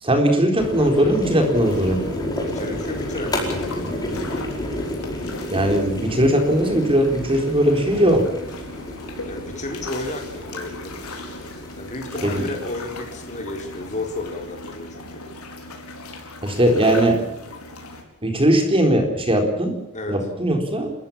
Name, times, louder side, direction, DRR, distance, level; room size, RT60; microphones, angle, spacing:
voice 1, 0.0-2.0 5.5-8.3 12.2-12.5 16.4-17.2 18.2-19.8 20.1-20.9, right 1 dB, 25° right, 4 dB, 4.0 m, -19 dB
sound 1, 0.6-15.1, left 1 dB, 20° left, 4.9 m, -31 dB
sound 2, 1.5-18.0, left 2 dB, 80° left, 4.9 m, -38 dB
voice 2, 2.4-4.2 9.3-11.2 11.8-15.2 19.9-20.2, left 2 dB, 35° left, 2 dB, 4.1 m, -33 dB
30.0 x 14.5 x 7.3 m, 0.88 s
head